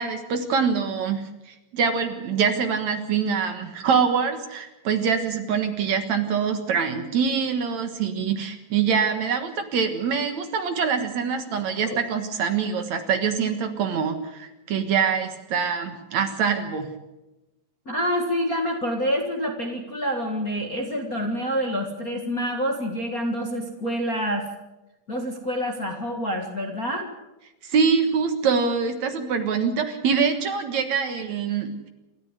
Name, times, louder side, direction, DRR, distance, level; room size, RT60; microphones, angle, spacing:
voice 1, 0.0-16.9 27.6-31.9, right 6 dB, 60° right, 7 dB, 2.5 m, -24 dB
voice 2, 17.9-24.5 25.1-27.1, equal, 35° left, 2 dB, 1.6 m, -27 dB
27.5 x 13.5 x 8.2 m, 1.0 s
omnidirectional pair, 4.0 m